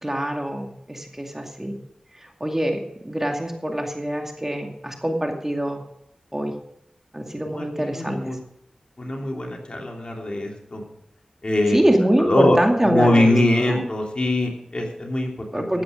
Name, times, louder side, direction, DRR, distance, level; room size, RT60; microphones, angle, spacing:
voice 1, 0.0-1.8 2.2-5.8 6.3-6.5 7.1-8.4 11.7-13.3 13.6-13.8 15.5-15.8, right 1 dB, 15° right, 3 dB, 2.3 m, -24 dB
voice 2, 7.5-8.4 9.0-10.8 11.4-11.8 12.2-15.8, left 1 dB, 50° left, 1 dB, 3.0 m, -22 dB
14.0 x 8.6 x 5.1 m, 0.78 s
cardioid pair, 40°, 2 cm